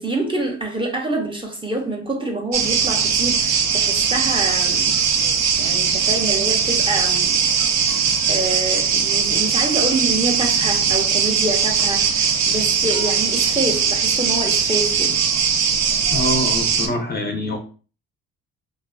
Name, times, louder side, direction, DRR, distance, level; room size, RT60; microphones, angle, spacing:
voice 1, 0.0-4.9 5.6-15.2, right 2 dB, 15° right, 0.6 m, -26 dB
sound 1, 2.5-16.9, right 6 dB, 65° right, 0.5 m, -20 dB
voice 2, 16.1-17.6, left 1 dB, 35° left, 0.5 m, -24 dB
2.4 x 2.3 x 2.2 m
cardioid pair, 90°, 30 cm